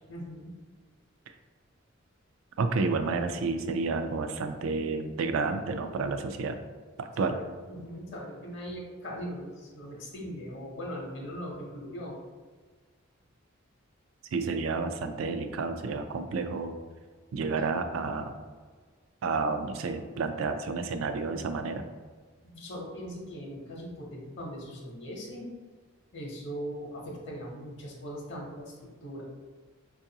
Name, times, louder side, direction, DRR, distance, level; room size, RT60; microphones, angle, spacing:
voice 1, 0.1-0.6 7.2-12.2 17.5-17.6 22.4-25.5 26.1-29.2, equal, 60° left, -2 dB, 0.8 m, -40 dB
voice 2, 2.6-6.6 7.0-7.4 14.3-16.7 17.3-18.4 19.2-21.8, right 4 dB, 85° right, 8 dB, 0.4 m, -30 dB
4.5 x 2.4 x 2.8 m, 1.5 s
head